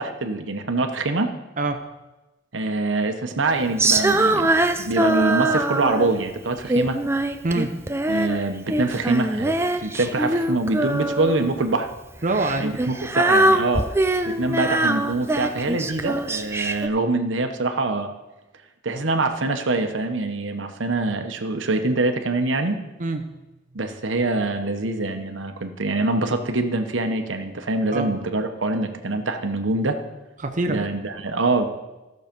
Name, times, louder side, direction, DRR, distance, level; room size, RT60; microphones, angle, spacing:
voice 1, 0.0-1.3 2.5-4.5 4.8-7.0 8.1-11.9 12.6-13.9 14.2-18.1 18.8-22.8 23.7-30.0 30.7-31.7, right 2 dB, 85° right, 6 dB, 1.0 m, -24 dB
Female singing, 3.8-6.2 6.7-8.4 8.7-11.5 12.3-16.9, right 2 dB, 15° right, 0.5 m, -22 dB
voice 2, 7.4-7.8 12.2-12.8 23.0-23.3 27.9-28.1 30.4-30.9, right 2 dB, 40° right, 5 dB, 0.8 m, -25 dB
15.0 x 6.5 x 5.2 m, 1.1 s
head